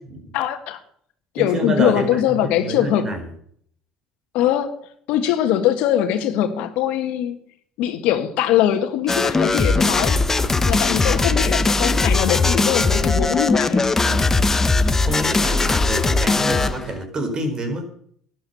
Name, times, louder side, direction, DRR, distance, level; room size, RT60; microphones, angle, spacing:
voice 1, 0.3-0.8 1.3-3.1 4.3-4.8 5.1-7.4 7.8-10.2 10.7-13.8, left 11 dB, 70° left, 8 dB, 1.7 m, -21 dB
voice 2, 1.4-3.2 10.4-10.6 14.0-14.3 15.1-17.8, right 2 dB, 35° right, 6 dB, 4.8 m, -27 dB
sound 1, 9.1-16.9, left 3 dB, 20° left, 1.1 m, -19 dB
12.5 x 10.5 x 7.0 m, 0.62 s
hypercardioid pair, 75°, 2 cm